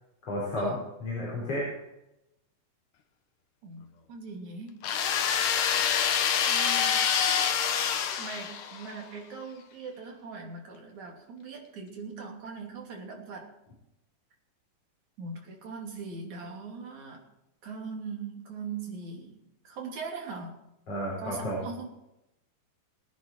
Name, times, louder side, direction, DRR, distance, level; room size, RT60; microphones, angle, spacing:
voice 1, 0.2-1.7 20.9-21.6, left 1 dB, 45° left, -5 dB, 6.2 m, -32 dB
voice 2, 3.6-4.9 6.5-7.1 8.2-13.5 15.2-17.2 17.6-20.6 21.2-21.9, right 4 dB, 60° right, 0 dB, 4.2 m, -40 dB
sound 1, 4.8-8.9, left 8 dB, 75° left, 2.8 m, -26 dB
22.5 x 9.8 x 4.7 m, 0.88 s
omnidirectional pair, 3.8 m